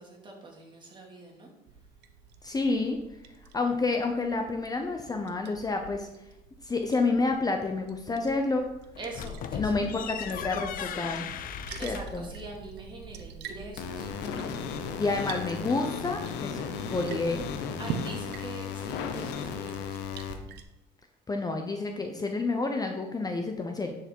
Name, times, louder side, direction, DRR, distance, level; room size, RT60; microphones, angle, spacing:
voice 1, 0.0-1.5 9.0-10.4 10.8-11.1 11.8-14.1 17.8-20.0, right 2 dB, 30° right, 0 dB, 2.4 m, -44 dB
Liquid, 1.7-20.6, right 6 dB, 80° right, 0.8 m, -45 dB
voice 2, 2.4-3.0 3.5-6.1 6.6-8.7 9.6-11.3 11.8-12.3 15.0-17.5 21.3-24.0, left 3 dB, 20° left, 4 dB, 0.8 m, -29 dB
sound 1, 8.9-12.2, left 9 dB, 60° left, 0.6 m, -37 dB
sound 2, 13.8-20.3, left 7 dB, 90° left, 0.9 m, -35 dB
9.9 x 4.9 x 4.6 m, 0.91 s
cardioid pair, 110°, 17 cm